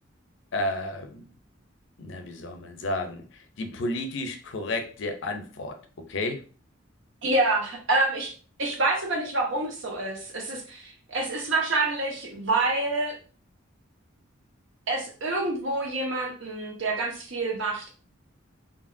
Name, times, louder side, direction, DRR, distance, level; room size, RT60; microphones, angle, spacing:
voice 1, 0.5-1.2 2.0-3.2 3.6-5.8 6.1-6.4, left 2 dB, 65° left, 6 dB, 0.5 m, -31 dB
voice 2, 7.2-8.3 8.6-13.2 14.9-17.9, right 2 dB, 65° right, 1 dB, 0.8 m, -27 dB
2.8 x 2.6 x 2.5 m, 0.38 s
head